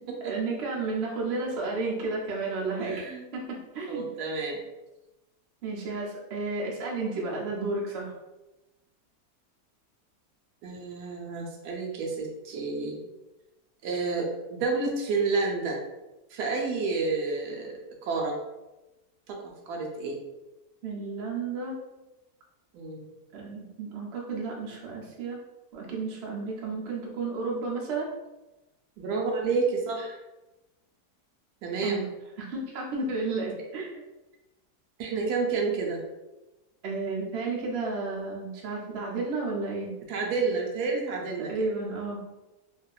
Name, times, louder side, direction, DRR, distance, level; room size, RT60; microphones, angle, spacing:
voice 1, 0.2-3.1 3.3-4.1 5.6-8.1 20.8-21.8 23.3-25.4 25.7-28.1 31.8-32.0 32.5-33.9 36.8-39.9 41.5-42.2, right 3 dB, 60° right, -2 dB, 0.6 m, -32 dB
voice 2, 2.8-3.3 3.9-4.6 10.6-13.0 13.8-15.8 16.3-18.4 19.3-20.2 22.7-23.1 29.0-30.2 31.6-32.0 35.0-36.0 40.1-41.7, right 4 dB, 80° right, 0 dB, 1.1 m, -30 dB
2.7 x 2.4 x 2.2 m, 1.0 s
omnidirectional pair, 1.7 m